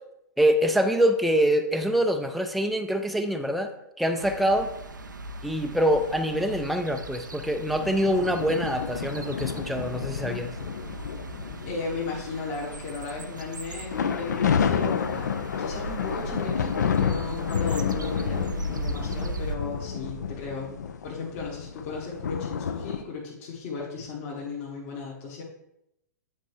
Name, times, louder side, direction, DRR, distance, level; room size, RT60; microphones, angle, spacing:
voice 1, 0.4-3.7 4.0-4.7 5.4-10.5, equal, ahead, 5 dB, 0.4 m, -25 dB
sound 1, 4.2-19.6, right 2 dB, 80° right, 0.5 m, -38 dB
sound 2, 7.8-12.5 12.8-13.1 13.8-23.0, left 7 dB, 65° left, 0.5 m, -30 dB
voice 2, 11.7-16.7 17.0-20.8 21.0-25.4, left 4 dB, 45° left, -4 dB, 1.4 m, -35 dB
9.2 x 4.4 x 3.2 m, 0.84 s
figure-of-eight pair, 105°, 10 cm